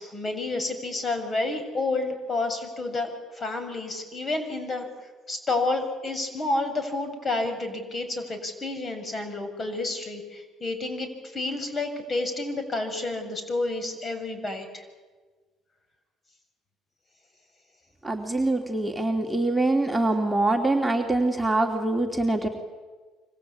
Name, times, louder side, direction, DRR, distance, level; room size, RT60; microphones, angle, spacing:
voice 1, 0.0-4.9 5.3-14.8, left 2 dB, 35° left, 7 dB, 7.1 m, -30 dB
voice 2, 18.0-22.5, right 2 dB, 5° right, 1 dB, 3.1 m, -24 dB
27.0 x 25.5 x 8.7 m, 1.4 s
hypercardioid pair, 60°, 0 cm